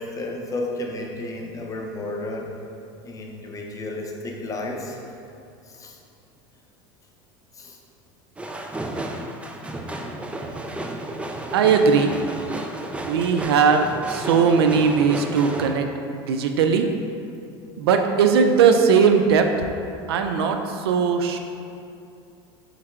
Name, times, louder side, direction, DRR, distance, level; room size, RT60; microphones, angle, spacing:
voice 1, 0.0-2.5 3.0-5.0 5.7-6.0 7.5-7.8, left 2 dB, 25° left, 0 dB, 0.7 m, -32 dB
sound 1, 8.4-15.7, right 1 dB, 10° right, 0.3 m, -32 dB
voice 2, 11.5-12.2 13.1-15.9 16.1-16.9 17.8-19.5 20.1-21.4, right 6 dB, 90° right, 6 dB, 0.4 m, -19 dB
4.2 x 3.2 x 3.6 m, 2.5 s
supercardioid pair, 95°, 13 cm